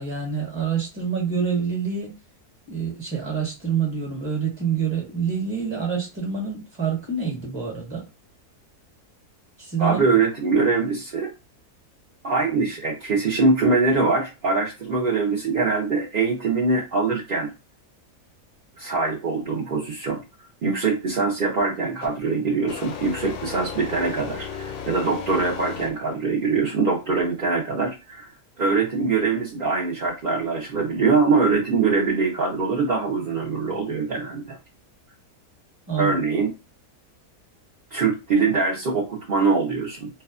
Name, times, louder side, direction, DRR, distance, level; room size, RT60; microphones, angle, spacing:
voice 1, 0.0-2.1 2.7-8.0 9.6-10.0 35.9-36.2, right 6 dB, 20° right, 1.0 m, -27 dB
voice 2, 9.8-11.3 12.2-17.5 18.8-20.2 20.6-28.3 28.6-34.6 36.0-36.5 37.9-40.1, right 4 dB, 55° right, 0.6 m, -23 dB
sound 1, 22.0-22.2 22.7-26.3, left 7 dB, 75° left, 1.1 m, -35 dB
2.7 x 2.2 x 2.4 m
omnidirectional pair, 1.7 m